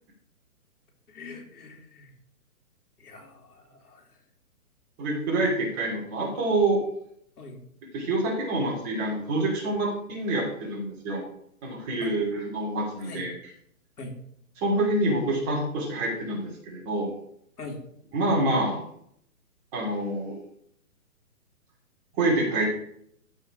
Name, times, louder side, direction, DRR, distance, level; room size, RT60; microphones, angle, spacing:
voice 1, 1.1-2.1 3.0-4.2 7.4-7.6 12.0-12.2 13.0-13.3 14.0-14.2 17.6-17.9, left 2 dB, 85° left, 1 dB, 3.4 m, -42 dB
voice 2, 5.0-6.8 7.9-11.2 11.6-13.3 14.6-17.1 18.1-18.8 19.7-20.4 22.2-22.6, right 2 dB, 20° right, -3 dB, 2.7 m, -26 dB
14.0 x 4.7 x 4.8 m, 0.69 s
hypercardioid pair, 160°, 45 cm